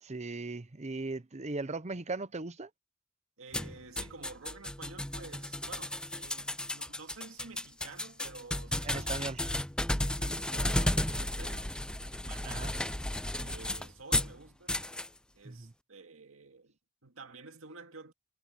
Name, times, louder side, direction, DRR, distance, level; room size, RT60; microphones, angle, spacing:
voice 1, 0.0-2.7 8.8-9.4 12.5-12.7 15.4-15.7, right 3 dB, 30° right, 0.8 m, -38 dB
voice 2, 3.4-9.6 10.0-11.7 12.2-12.8 13.4-14.8 15.3-18.1, right 4 dB, 65° right, 2.4 m, -50 dB
sound 1, 3.5-14.3 14.7-15.1, left 1 dB, 5° left, 0.5 m, -33 dB
head